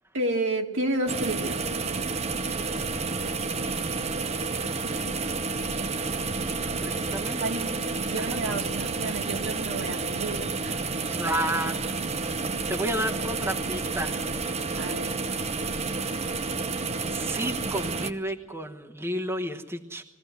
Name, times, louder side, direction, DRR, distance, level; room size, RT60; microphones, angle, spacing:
voice 1, 0.1-1.6 7.4-7.7 8.0-10.9 14.8-15.1, right 2 dB, 65° right, 3 dB, 2.1 m, -30 dB
sound 1, 1.1-18.1, right 4 dB, 30° right, 0.8 m, -30 dB
voice 2, 6.8-7.4 8.2-8.4 11.1-11.8 12.7-14.2 17.1-20.0, right 1 dB, 10° right, 2 dB, 1.1 m, -31 dB
21.5 x 16.0 x 9.2 m, 1.1 s
head